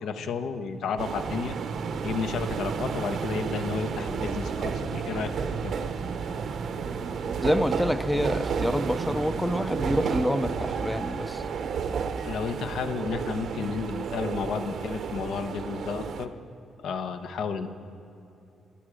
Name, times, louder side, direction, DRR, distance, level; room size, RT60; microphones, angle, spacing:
voice 1, 0.0-1.6 2.0-5.3 5.6-5.8 12.2-16.3 16.8-17.7, left 6 dB, 70° left, 9 dB, 0.9 m, -32 dB
sound 1, 1.0-16.3, right 6 dB, 55° right, 0.7 m, -31 dB
voice 2, 7.4-11.4, equal, 5° left, 12 dB, 0.4 m, -27 dB
25.5 x 8.6 x 5.0 m, 2.8 s
cardioid pair, 160°, 0 cm